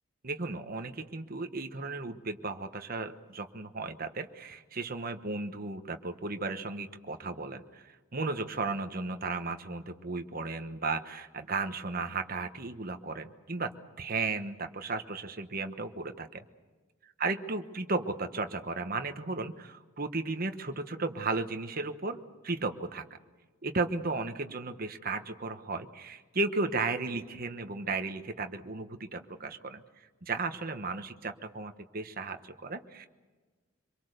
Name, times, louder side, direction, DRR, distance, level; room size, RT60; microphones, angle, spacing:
voice 1, 0.2-13.7 14.0-16.4 17.2-23.0 23.6-29.8 30.2-33.1, right 3 dB, 45° right, 7 dB, 1.2 m, -35 dB
25.5 x 23.0 x 6.7 m, 1.3 s
head